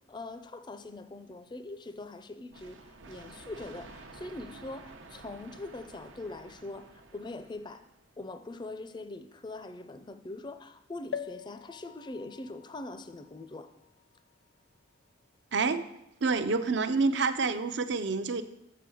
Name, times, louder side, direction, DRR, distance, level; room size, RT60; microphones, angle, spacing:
voice 1, 0.1-7.9 8.2-13.7, left 2 dB, 25° left, 10 dB, 0.4 m, -42 dB
sound 1, 2.5-8.1, right 3 dB, 90° right, 0.9 m, -51 dB
sound 2, 11.1-14.8 15.4-15.5 15.7-15.8, left 8 dB, 90° left, 0.4 m, -44 dB
voice 2, 15.5-15.8 16.2-18.4, right 4 dB, 65° right, 11 dB, 0.5 m, -28 dB
6.8 x 6.3 x 6.2 m, 0.85 s
head